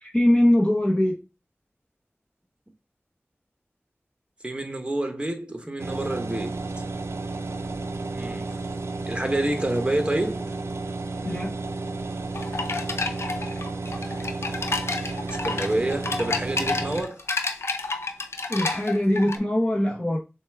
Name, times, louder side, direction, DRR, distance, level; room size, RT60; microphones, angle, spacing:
voice 1, 0.0-1.2 11.2-11.5 18.5-20.2, left 1 dB, 25° left, 1.0 m, -22 dB
voice 2, 4.4-6.6 8.1-8.5 9.1-10.5 15.3-17.2, right 1 dB, 25° right, 0.9 m, -28 dB
sound 1, 5.8-17.0, right 3 dB, 75° right, 0.4 m, -32 dB
sound 2, 12.3-19.4, left 3 dB, 70° left, 0.5 m, -30 dB
6.7 x 2.3 x 3.3 m
wide cardioid pair, 45°, 5 cm